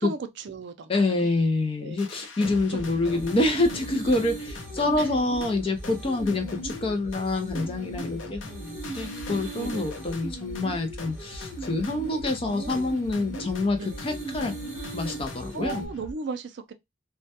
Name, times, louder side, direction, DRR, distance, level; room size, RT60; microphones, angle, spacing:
voice 1, 0.0-1.3 1.8-2.0 2.5-3.4 5.0-5.1 6.3-6.4 9.6-10.0 12.5-12.9 13.8-14.0 15.5-16.7, right 4 dB, 65° right, 0.4 m, -37 dB
voice 2, 0.9-14.5 14.9-15.8, left 2 dB, 30° left, 0.4 m, -27 dB
sound 1, 2.0-16.1, left 2 dB, 90° left, 0.6 m, -40 dB
sound 2, 3.1-15.9, right 2 dB, 10° right, 1.0 m, -39 dB
2.2 x 2.1 x 2.7 m
head